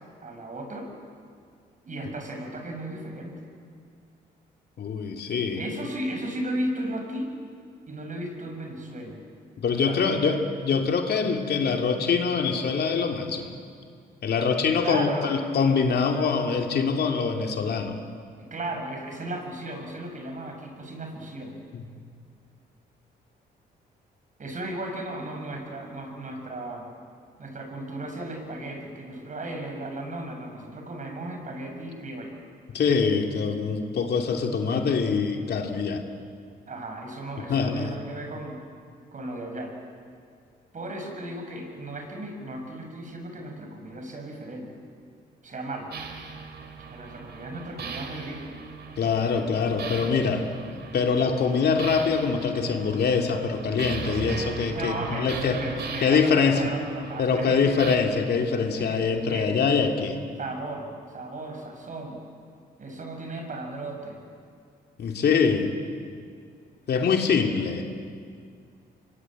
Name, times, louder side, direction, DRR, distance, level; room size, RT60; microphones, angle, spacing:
voice 1, 0.2-0.9 1.9-3.5 5.5-7.3 7.9-9.2 9.7-10.3 14.8-15.6 18.4-21.6 24.4-26.9 27.4-32.3 36.7-38.6 39.1-39.7 40.7-44.7 45.4-45.9 46.9-48.5 54.7-58.0 58.8-59.6 60.4-62.2 62.8-64.2 67.4-67.6, right 1 dB, 45° right, 3 dB, 6.4 m, -35 dB
voice 2, 4.8-5.6 9.6-13.5 14.2-18.0 21.7-21.8 32.7-36.0 37.5-38.0 49.0-50.5 50.9-55.6 56.0-56.7 57.2-60.2 65.0-65.7 66.9-67.8, left 5 dB, 60° left, 4 dB, 2.8 m, -24 dB
sound 1, 45.9-58.0, right 5 dB, 65° right, 2.9 m, -38 dB
25.0 x 21.5 x 8.9 m, 2.2 s
cardioid pair, 75°, 18 cm